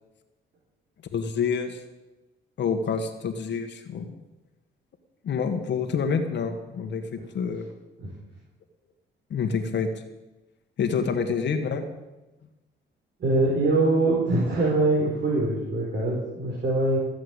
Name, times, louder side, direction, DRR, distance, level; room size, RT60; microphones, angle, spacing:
voice 1, 1.1-1.8 2.6-4.1 5.2-7.7 9.3-9.9 10.8-11.8, left 6 dB, 65° left, 5 dB, 1.6 m, -27 dB
voice 2, 13.2-17.0, right 2 dB, 60° right, -4 dB, 4.4 m, -23 dB
15.0 x 8.0 x 8.1 m, 1.1 s
cardioid pair, 90°, 20 cm